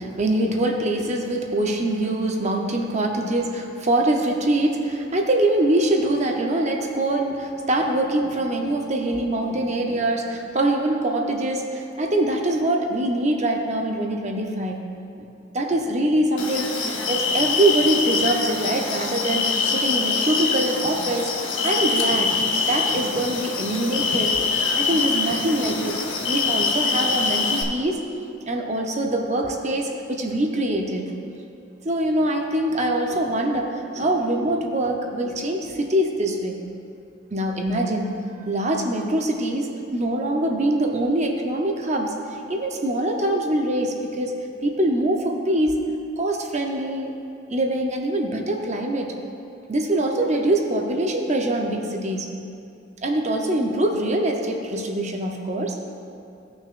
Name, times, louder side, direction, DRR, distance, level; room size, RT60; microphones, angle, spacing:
voice 1, 0.0-14.9 15.2-15.3 15.5-28.0 28.5-31.2 31.8-36.6 37.3-44.3 44.6-45.8 46.2-47.1 47.5-49.2 49.7-52.3 53.0-55.8, right 1 dB, 35° right, 2 dB, 0.8 m, -24 dB
sound 1, 16.4-27.6, left 4 dB, 85° left, 0.9 m, -24 dB
16.5 x 6.1 x 2.5 m, 2.6 s
head